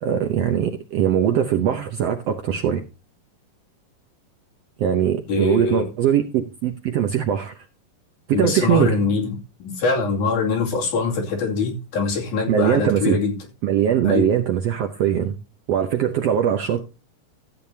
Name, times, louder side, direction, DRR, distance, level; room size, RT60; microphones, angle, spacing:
voice 1, 0.0-2.8 4.8-7.5 8.3-9.0 12.5-13.2 13.6-15.4 15.7-16.8, right 9 dB, 70° right, 1.5 m, -21 dB
voice 2, 5.3-5.9 8.3-13.4 14.0-14.3, left 4 dB, 70° left, 4.0 m, -23 dB
14.0 x 9.1 x 2.8 m
omnidirectional pair, 3.8 m